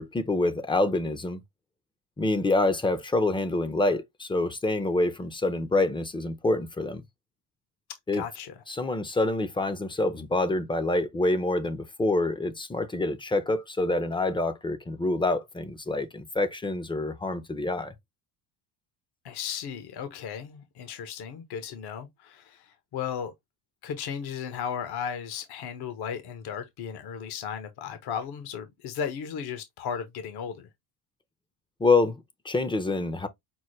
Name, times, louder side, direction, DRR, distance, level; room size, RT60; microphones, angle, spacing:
voice 1, 0.0-1.4 2.2-7.0 8.1-8.2 8.7-17.9 31.8-33.3, left 2 dB, 10° left, 0.6 m, -26 dB
voice 2, 8.1-8.6 19.2-23.3 23.8-30.7, left 7 dB, 55° left, 1.1 m, -35 dB
6.0 x 2.1 x 3.1 m
supercardioid pair, 100°, 46 cm